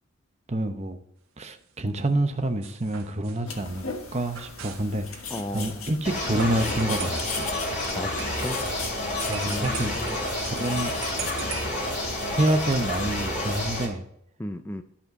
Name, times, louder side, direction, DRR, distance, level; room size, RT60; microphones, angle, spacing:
voice 1, 0.5-1.0 1.4-3.8 4.1-7.5 9.3-9.9 10.5-10.9 12.3-14.0, right 1 dB, 30° right, 8 dB, 0.7 m, -27 dB
sound 1, 2.6-4.9 6.4-8.9 9.2-11.9, right 6 dB, 70° right, 1.4 m, -41 dB
sound 2, 3.4-13.6, left 4 dB, 70° left, 1.5 m, -38 dB
voice 2, 5.3-5.8 7.6-8.6 9.5-10.2 14.4-14.8, left 1 dB, 10° left, 7 dB, 0.3 m, -35 dB
sound 3, 6.0-13.9, left 1 dB, 35° left, 2.6 m, -30 dB
12.0 x 4.3 x 5.3 m, 0.73 s
head